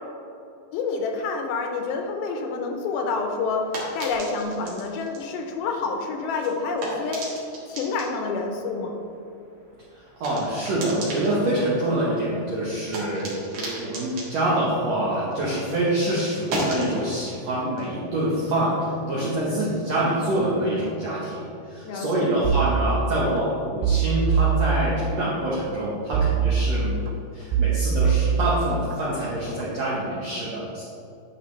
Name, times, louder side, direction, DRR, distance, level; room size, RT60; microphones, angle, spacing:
voice 1, 0.7-3.7 4.0-7.2 7.7-9.0 19.4-19.5 21.8-22.3, left 4 dB, 80° left, 3 dB, 2.5 m, -28 dB
sound 1, 2.9-15.7 16.0-19.2, right 1 dB, 55° right, 2.5 m, -37 dB
voice 2, 9.9-27.0 27.3-30.8, right 1 dB, 75° right, -7 dB, 1.5 m, -26 dB
sound 2, 22.4-23.4 23.8-25.3 26.1-27.1 27.5-29.0 29.4-29.8, right 6 dB, 90° right, 2.7 m, -23 dB
10.0 x 5.6 x 3.2 m, 2.7 s
omnidirectional pair, 4.5 m